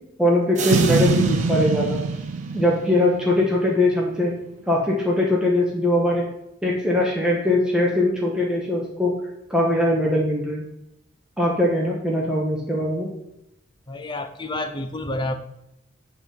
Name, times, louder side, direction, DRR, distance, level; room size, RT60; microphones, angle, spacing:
voice 1, 0.2-2.0 2.5-4.3 4.7-6.2 6.6-9.1 9.5-10.6 11.4-13.1, left 1 dB, 5° right, 1.2 m, -21 dB
sound 1, 0.5-3.2, right 5 dB, 35° right, 0.8 m, -33 dB
Boom, 0.7-4.0, right 4 dB, 75° right, 0.4 m, -24 dB
voice 2, 13.9-15.3, left 2 dB, 20° left, 0.6 m, -29 dB
9.0 x 3.9 x 5.5 m
head